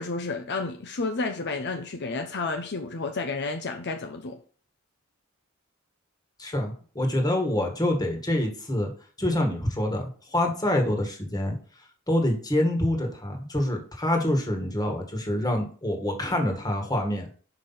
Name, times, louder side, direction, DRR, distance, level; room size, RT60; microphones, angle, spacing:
voice 1, 0.0-4.4, left 3 dB, 55° left, 0.7 m, -31 dB
voice 2, 6.4-8.9 9.2-17.3, left 1 dB, 20° left, 1.7 m, -26 dB
5.8 x 5.1 x 5.6 m
head